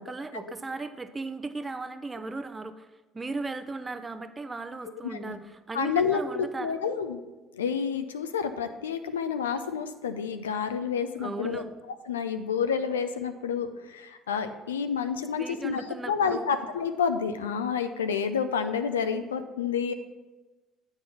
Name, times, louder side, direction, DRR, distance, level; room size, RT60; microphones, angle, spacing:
voice 1, 0.0-2.9 3.1-6.8 11.2-11.7 15.4-16.5, right 3 dB, 20° right, 10 dB, 0.6 m, -37 dB
voice 2, 5.0-5.4 5.7-7.2 7.5-11.6 12.1-19.9, left 6 dB, 85° left, 9 dB, 0.4 m, -29 dB
8.4 x 4.5 x 5.6 m, 1.2 s
hypercardioid pair, 60°, 0 cm